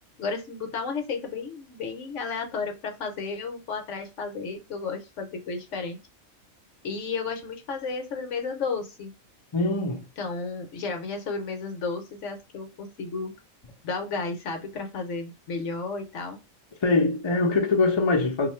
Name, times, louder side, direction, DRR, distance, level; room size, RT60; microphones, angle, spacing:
voice 1, 0.2-6.0 6.8-9.1 10.2-13.3 13.8-16.4, left 4 dB, 65° left, 1.0 m, -33 dB
voice 2, 9.5-10.1 16.8-18.5, left 3 dB, 35° left, 0.5 m, -23 dB
2.7 x 2.4 x 4.2 m
omnidirectional pair, 1.4 m